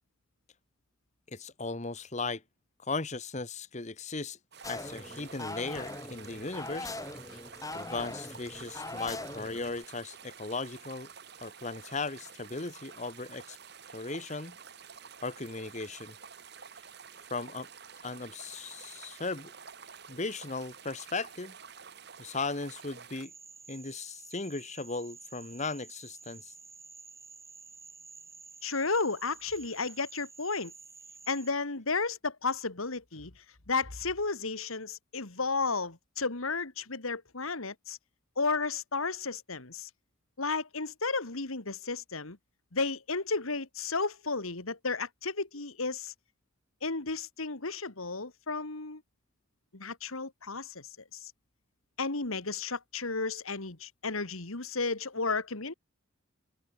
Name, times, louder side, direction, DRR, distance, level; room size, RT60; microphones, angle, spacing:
voice 1, 1.3-2.4 2.9-4.4 4.7-7.0 7.7-11.1 11.4-13.6 13.9-14.6 15.2-16.1 17.3-17.7 18.0-19.5 20.1-21.5 22.2-23.3 23.7-26.5, left 3 dB, 35° left, 1.2 m, -37 dB
sound 1, 4.5-23.3, right 6 dB, 50° right, 1.9 m, -50 dB
sound 2, 4.6-9.8, left 2 dB, 15° left, 3.7 m, -41 dB
Frog, 23.2-31.5, right 4 dB, 15° right, 4.1 m, -51 dB
voice 2, 28.6-30.7 31.3-38.0 38.4-39.9 40.4-42.4 42.7-46.1 46.8-49.0 49.7-51.3 52.0-55.7, left 4 dB, 80° left, 2.3 m, -33 dB
open air
head